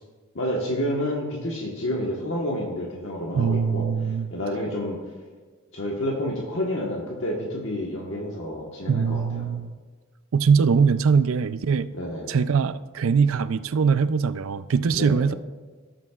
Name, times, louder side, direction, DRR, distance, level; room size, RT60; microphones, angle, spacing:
voice 1, 0.3-3.9 4.3-5.0 5.7-9.5 11.9-12.3 14.9-15.2, left 1 dB, 65° left, -3 dB, 1.4 m, -29 dB
voice 2, 3.3-4.3 8.9-9.7 10.3-11.9 12.3-15.3, right 5 dB, 75° right, 14 dB, 0.4 m, -22 dB
17.5 x 7.4 x 2.4 m, 1.4 s
head